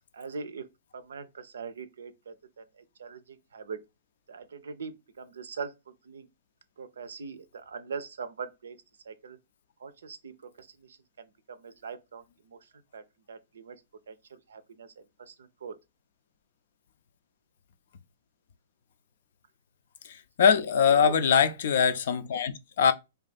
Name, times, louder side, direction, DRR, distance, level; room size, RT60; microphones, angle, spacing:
voice 1, 0.1-0.7 0.9-3.8 4.3-5.7 6.0-6.3 6.8-8.8 9.1-9.4 9.8-12.6 12.9-13.8 14.1-14.9 15.2-15.8 20.9-21.2, right 5 dB, 80° right, 0.5 m, -42 dB
voice 2, 20.4-22.9, left 7 dB, 65° left, 0.4 m, -22 dB
2.6 x 2.4 x 4.0 m
hypercardioid pair, 125°, 0 cm